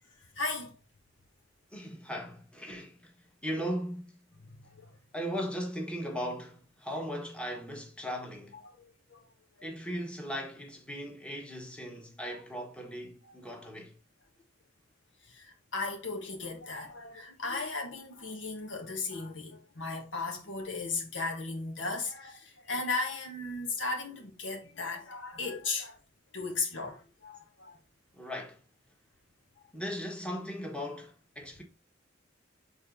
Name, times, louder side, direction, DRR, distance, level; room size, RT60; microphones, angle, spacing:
voice 1, 0.4-0.7 4.5-4.9 8.5-9.2 12.3-12.4 15.3-26.0 26.3-27.8, left 3 dB, 85° left, 1.8 m, -36 dB
voice 2, 1.7-4.1 5.1-8.6 9.6-13.9 28.1-28.6 29.7-31.6, equal, 5° left, 1.4 m, -38 dB
6.7 x 4.0 x 3.8 m
head